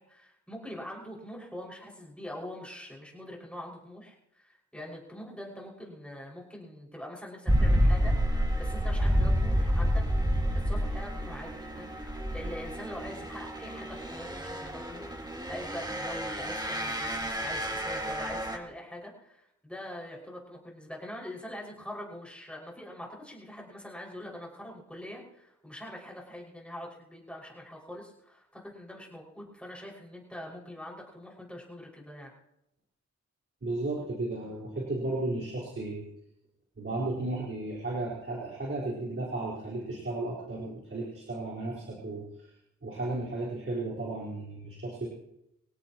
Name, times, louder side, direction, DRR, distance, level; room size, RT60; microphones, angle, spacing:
voice 1, 0.0-10.0 10.5-32.3, left 1 dB, 5° left, -3 dB, 6.1 m, -44 dB
sound 1, 7.5-18.6, equal, 15° right, 2.2 m, -29 dB
voice 2, 33.6-36.0 36.8-42.5 42.8-45.1, right 2 dB, 45° right, -6 dB, 4.7 m, -34 dB
25.0 x 17.5 x 3.1 m, 0.82 s
wide cardioid pair, 100°, 29 cm